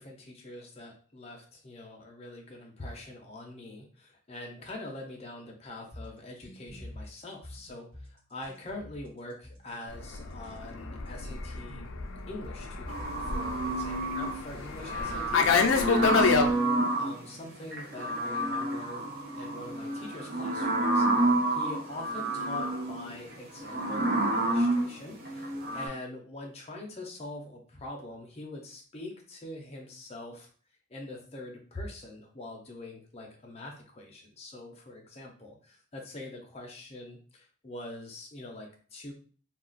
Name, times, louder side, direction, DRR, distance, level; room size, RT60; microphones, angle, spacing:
voice 1, 0.0-11.9 12.3-19.0 19.4-30.5 30.9-39.1, left 1 dB, 30° left, 1 dB, 0.6 m, -44 dB
sound 1, 5.9-13.9, left 1 dB, 30° right, 1.3 m, -47 dB
Fixed-wing aircraft airplane, 10.0-16.5, left 5 dB, 70° left, 0.4 m, -28 dB
sound 2, 12.9-14.4 14.8-17.2 17.7-25.9, right 2 dB, 45° right, 0.6 m, -29 dB
2.4 x 2.3 x 3.8 m, 0.43 s
head